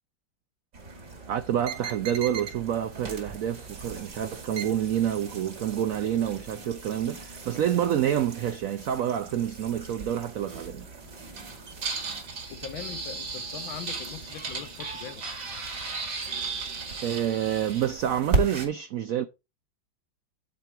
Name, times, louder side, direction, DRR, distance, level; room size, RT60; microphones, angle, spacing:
sound 1, 0.7-18.7, right 3 dB, 60° right, 2.8 m, -36 dB
voice 1, 1.3-10.9 17.0-19.2, right 10 dB, 75° right, 0.7 m, -28 dB
voice 2, 12.5-15.2, left 9 dB, 90° left, 1.8 m, -41 dB
10.0 x 4.5 x 4.7 m
omnidirectional pair, 2.1 m